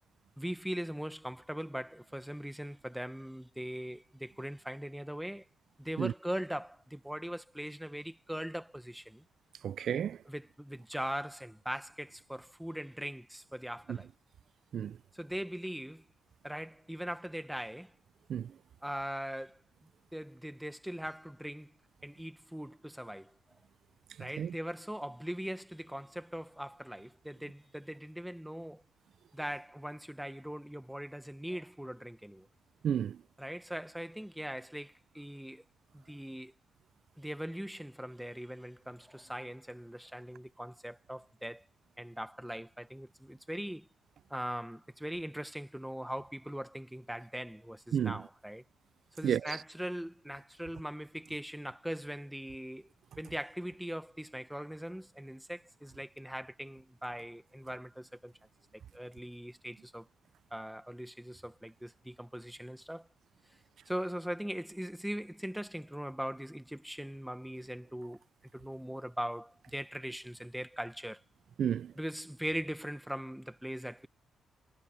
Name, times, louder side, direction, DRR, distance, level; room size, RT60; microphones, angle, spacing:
voice 1, 0.4-5.5 5.8-9.2 10.3-14.1 15.1-16.0 16.4-17.9 18.8-19.6 20.1-21.7 22.0-23.3 24.2-28.8 29.3-32.5 33.4-35.6 35.9-36.5 37.2-41.6 42.0-43.9 44.3-48.6 49.2-52.9 53.2-58.3 58.9-60.1 60.5-63.1 63.9-68.2 68.5-71.2 72.0-74.1, equal, 5° right, 1.4 m, -40 dB
voice 2, 9.6-10.2 13.9-14.0 14.7-15.0 18.3-18.5 24.4-24.5 32.8-33.2 47.9-48.2 49.2-49.6 71.6-71.9, right 9 dB, 65° right, 0.5 m, -31 dB
cardioid pair, 95°, 0 cm